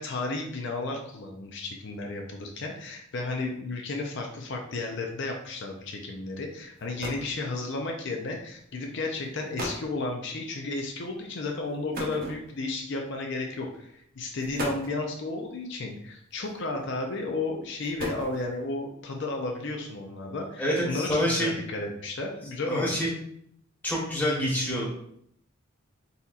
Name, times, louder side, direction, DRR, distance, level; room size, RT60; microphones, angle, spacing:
voice 1, 0.0-23.0, left 2 dB, 60° left, 1 dB, 0.5 m, -33 dB
sound 1, 6.4-6.5 6.8-7.4 8.4-8.6 9.2-9.3 9.6-9.9 11.9-12.8 13.7-13.9 14.4-15.1 16.3-16.8 17.6-18.7, equal, 45° right, 0.9 m, -36 dB
voice 2, 20.6-21.5 22.7-23.1 23.8-24.9, equal, 10° left, -5 dB, 1.1 m, -26 dB
4.1 x 4.0 x 2.4 m, 0.70 s
head